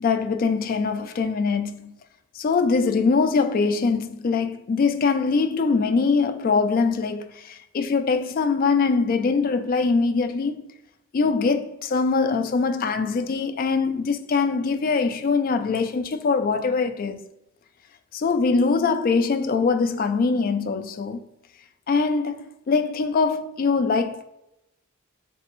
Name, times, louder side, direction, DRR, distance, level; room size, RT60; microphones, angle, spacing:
voice 1, 0.0-1.9 2.3-10.6 11.1-17.2 18.1-21.2 21.9-24.2, left 4 dB, 45° left, 0.3 m, -23 dB
3.9 x 3.3 x 3.0 m
head